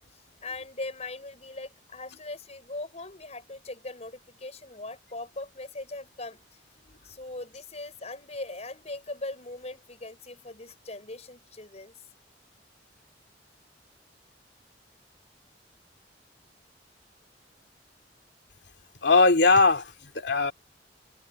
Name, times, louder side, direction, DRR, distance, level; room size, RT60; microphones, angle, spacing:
voice 1, 0.4-6.4 7.0-12.0, left 2 dB, 40° left, 6.2 m, -40 dB
voice 2, 19.0-20.5, left 3 dB, 75° left, 2.7 m, -20 dB
head